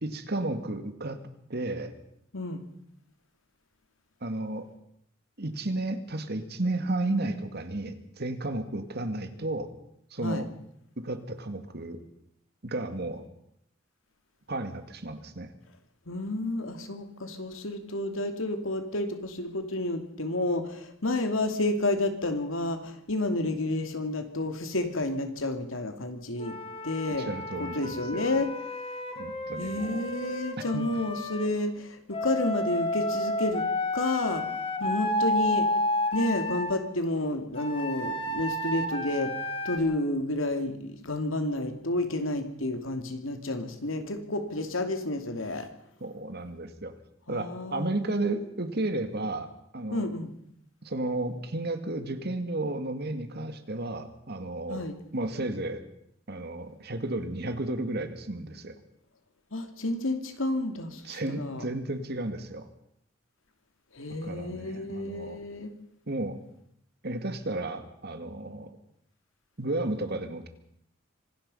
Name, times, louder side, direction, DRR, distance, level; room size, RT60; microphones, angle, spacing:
voice 1, 0.0-1.2 1.5-1.9 4.2-4.7 5.4-9.7 10.1-10.5 11.0-12.0 12.6-13.3 14.5-15.5 27.3-28.3 29.2-30.0 30.6-30.8 46.0-46.9 47.3-50.1 50.8-54.8 55.1-55.8 56.3-58.8 61.0-62.7 64.2-65.4 66.1-66.4 67.0-68.8 69.6-70.5, right 2 dB, 55° right, 9 dB, 2.1 m, -33 dB
voice 2, 16.1-26.6 26.8-27.3 27.6-28.8 29.6-33.6 33.9-34.5 34.8-35.7 36.1-39.3 39.6-45.7 47.3-48.2 49.9-50.3 54.7-55.0 59.5-61.7 63.9-65.7, left 2 dB, 80° left, 7 dB, 2.8 m, -30 dB
Wind instrument woodwind instrument, 26.4-31.5 32.1-36.8 37.6-39.8, left 1 dB, 30° left, 2.5 m, -31 dB
25.5 x 18.5 x 5.6 m, 0.74 s
head